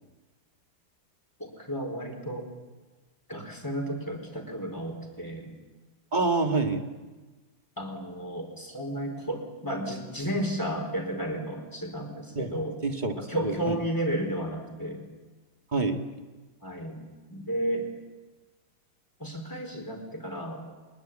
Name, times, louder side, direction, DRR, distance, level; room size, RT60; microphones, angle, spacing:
voice 1, 1.4-2.5 3.3-5.5 7.8-12.8 13.2-15.0 16.6-17.0 17.3-17.9 19.2-20.6, right 1 dB, 10° left, 3 dB, 4.4 m, -33 dB
voice 2, 6.1-6.9 12.4-12.5 12.8-13.8 15.7-16.0, right 3 dB, 25° right, 4 dB, 1.7 m, -27 dB
24.5 x 21.5 x 8.9 m, 1.3 s
omnidirectional pair, 2.1 m